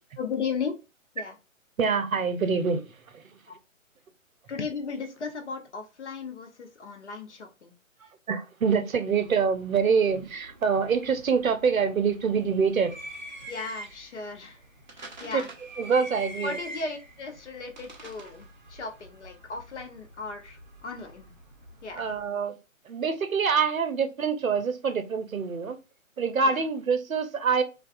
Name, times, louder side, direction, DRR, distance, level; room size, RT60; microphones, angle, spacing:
voice 1, 0.2-0.7 1.1-1.3 3.5-3.6 4.5-7.7 13.5-14.6 14.9-15.5 16.4-21.3 21.8-22.1 26.4-26.6, left 5 dB, 60° left, 0.7 m, -36 dB
voice 2, 1.8-2.9 3.1-3.2 8.3-12.9 15.2-15.4 15.8-16.6 21.9-22.5 22.9-25.8 26.2-27.6, right 5 dB, 85° right, 0.6 m, -25 dB
sound 1, 9.2-22.3, right 1 dB, 35° right, 0.5 m, -46 dB
2.3 x 2.2 x 2.4 m
figure-of-eight pair, 135°, 40 cm